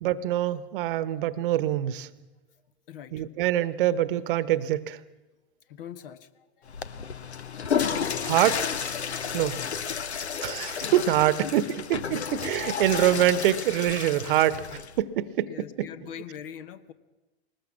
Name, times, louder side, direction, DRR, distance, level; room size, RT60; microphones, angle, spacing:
voice 1, 0.0-2.1 3.1-5.0 8.2-8.7 9.3-9.6 10.4-14.7 15.0-15.9, right 12 dB, 55° right, 17 dB, 1.1 m, -25 dB
voice 2, 2.9-3.2 5.7-6.3 6.6-6.7 7.3-7.4 11.4-11.5 14.5-14.6 15.5-16.9, left 9 dB, 55° left, 14 dB, 1.3 m, -42 dB
Water / Toilet flush, 6.7-15.0, left 7 dB, 80° left, 1.0 m, -32 dB
20.5 x 20.0 x 7.4 m, 1.1 s
figure-of-eight pair, 95°, 33 cm